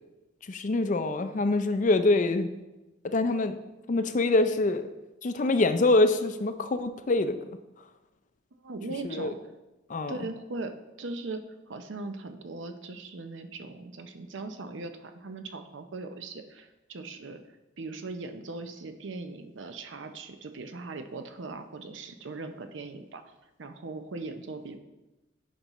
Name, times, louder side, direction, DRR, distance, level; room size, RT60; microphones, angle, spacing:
voice 1, 0.5-2.5 3.0-3.6 3.9-4.8 5.2-7.6 9.0-9.3 9.9-10.2, left 2 dB, 40° left, 9 dB, 0.5 m, -25 dB
voice 2, 8.6-9.4 10.1-17.4 17.8-23.3 23.6-24.8, right 3 dB, 80° right, 7 dB, 0.6 m, -39 dB
9.1 x 5.4 x 3.0 m, 1.0 s
head